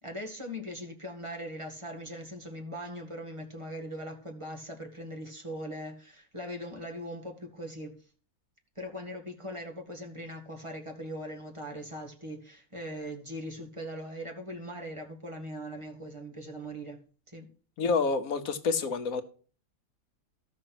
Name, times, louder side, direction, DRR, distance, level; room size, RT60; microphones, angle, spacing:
voice 1, 0.0-8.1 8.8-17.5, equal, 20° right, 1.9 m, -40 dB
voice 2, 17.8-19.2, left 4 dB, 70° left, 1.5 m, -28 dB
13.0 x 6.5 x 6.0 m
omnidirectional pair, 1.6 m